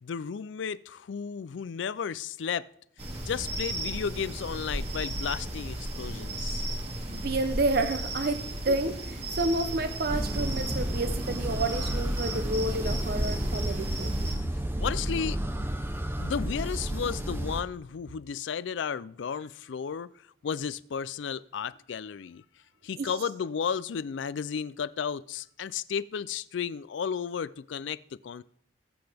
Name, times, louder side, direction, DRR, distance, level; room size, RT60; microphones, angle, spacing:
voice 1, 0.0-2.7 3.3-6.6 8.7-8.8 14.8-15.4 16.2-20.1 20.4-22.4 22.8-28.4, left 7 dB, 75° left, 0.4 m, -33 dB
sound 1, 3.0-14.3, right 1 dB, 35° right, 2.1 m, -35 dB
voice 2, 7.1-9.0 9.3-14.4 23.0-23.2, right 2 dB, 50° right, 0.6 m, -30 dB
sound 2, 10.1-17.6, right 1 dB, 10° right, 0.6 m, -31 dB
19.5 x 7.8 x 3.5 m
head